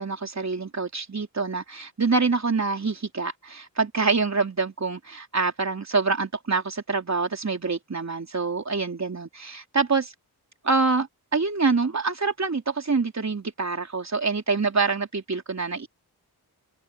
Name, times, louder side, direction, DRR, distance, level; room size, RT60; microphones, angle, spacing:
voice 1, 0.0-10.1 10.6-15.9, right 4 dB, 40° right, 3.8 m, -26 dB
open air
cardioid pair, 65°, 39 cm